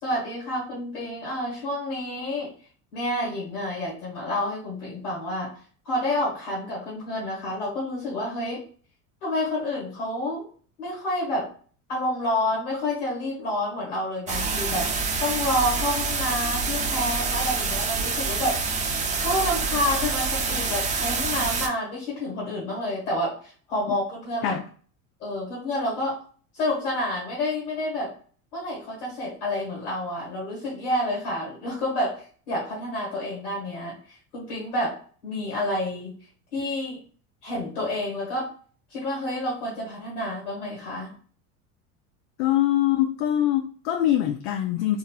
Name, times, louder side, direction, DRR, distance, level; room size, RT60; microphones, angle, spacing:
voice 1, 0.0-2.5 2.9-5.5 5.8-8.6 9.2-10.5 10.8-11.5 11.9-18.6 19.2-24.6 25.2-26.2 26.5-28.1 28.5-36.2 36.5-37.0 37.4-38.5 38.9-41.1, left 1 dB, 85° left, 1.5 m, -29 dB
sound 1, 14.3-21.7, right 4 dB, 20° right, 0.4 m, -27 dB
voice 2, 42.4-45.0, left 12 dB, 60° left, 0.5 m, -23 dB
3.0 x 2.5 x 2.2 m
hypercardioid pair, 85°, 43 cm